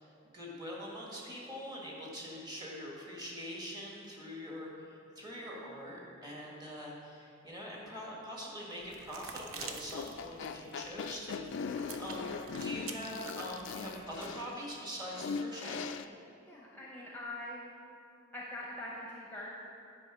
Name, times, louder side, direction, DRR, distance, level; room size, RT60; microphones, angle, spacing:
voice 1, 0.0-12.3 12.6-15.9, equal, 20° right, -3 dB, 1.5 m, -44 dB
sound 1, 8.8-14.4, right 5 dB, 90° right, 0.7 m, -49 dB
sound 2, 9.6-16.1, left 5 dB, 60° left, 0.3 m, -40 dB
voice 2, 16.5-17.7 18.3-19.5, left 1 dB, 10° left, -4 dB, 0.8 m, -43 dB
9.6 x 4.9 x 6.0 m, 2.6 s
head